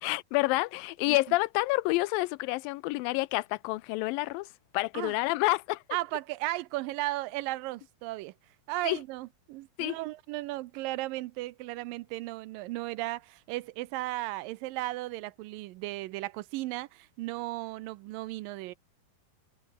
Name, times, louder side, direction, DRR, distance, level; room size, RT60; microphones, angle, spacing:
voice 1, 0.0-4.5 4.7-5.8 8.8-9.0 9.8-10.0, left 21 dB, 85° left, 2.3 m, -28 dB
voice 2, 5.9-8.3 8.7-18.7, right 18 dB, 85° right, 2.3 m, -35 dB
omnidirectional pair, 4.1 m